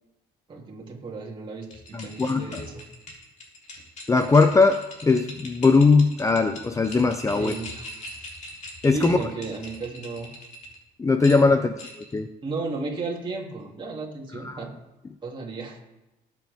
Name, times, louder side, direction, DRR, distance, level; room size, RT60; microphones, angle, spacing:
voice 1, 0.5-2.8 7.3-8.3 8.9-10.3 11.4-11.6 12.4-14.7 15.2-15.8, right 3 dB, 30° right, -2 dB, 2.9 m, -34 dB
sound 1, 1.6-10.8 11.2-12.2, left 1 dB, 45° left, 3.5 m, -41 dB
voice 2, 1.9-2.6 4.1-7.5 8.8-9.2 11.0-11.7 12.1-12.3 14.4-14.6, left 4 dB, 20° left, 9 dB, 0.6 m, -20 dB
19.5 x 7.6 x 3.6 m, 0.99 s
cardioid pair, 110°, 17 cm